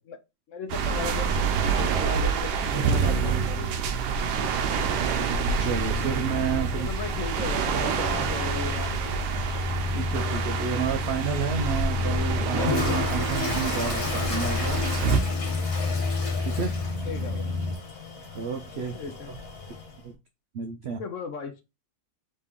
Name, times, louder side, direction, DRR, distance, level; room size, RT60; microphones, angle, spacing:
voice 1, 0.5-1.3 1.7-3.7 6.8-8.9 17.0-17.5 18.9-19.3 20.9-21.6, left 5 dB, 65° left, 0.9 m, -36 dB
sound 1, 0.7-15.2, right 5 dB, 90° right, 1.3 m, -27 dB
sound 2, 5.6-17.8, left 4 dB, 25° left, 0.8 m, -31 dB
voice 2, 5.6-6.9 9.9-14.8 16.4-16.8 18.3-19.0 20.0-20.1 20.5-21.0, right 6 dB, 70° right, 0.6 m, -31 dB
Toilet flush, 12.5-20.0, left 2 dB, 45° left, 1.4 m, -33 dB
4.1 x 3.2 x 3.5 m
omnidirectional pair, 1.7 m